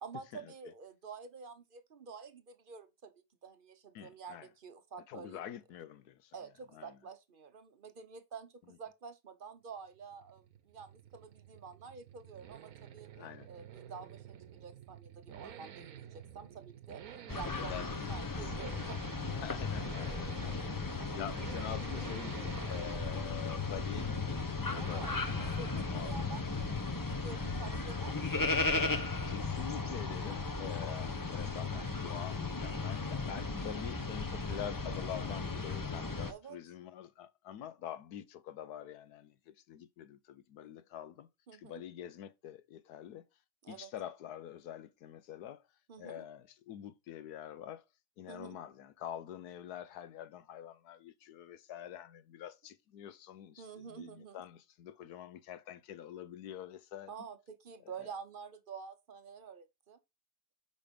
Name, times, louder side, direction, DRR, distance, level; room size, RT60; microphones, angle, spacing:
voice 1, 0.0-3.1 3.4-5.4 6.3-13.1 13.5-17.0 17.3-19.4 21.0-21.8 24.7-26.7 26.9-28.5 36.3-36.6 40.7-40.8 41.5-41.8 43.6-43.9 45.9-46.3 48.3-48.6 53.6-54.4 57.1-60.0, right 5 dB, 45° right, 0.8 m, -49 dB
voice 2, 3.9-4.5 5.1-6.3 6.7-7.0 13.2-13.5 17.6-18.4 19.3-25.5 25.8-26.3 29.3-43.3 43.7-45.6 46.0-47.8 48.2-57.1, left 10 dB, 75° left, 1.2 m, -46 dB
Accelerating revving vroom, 9.8-28.0 28.2-28.3, right 9 dB, 65° right, 1.3 m, -51 dB
sound 1, 17.3-36.3, left 3 dB, 25° left, 0.4 m, -36 dB
6.8 x 5.2 x 5.1 m
omnidirectional pair, 1.7 m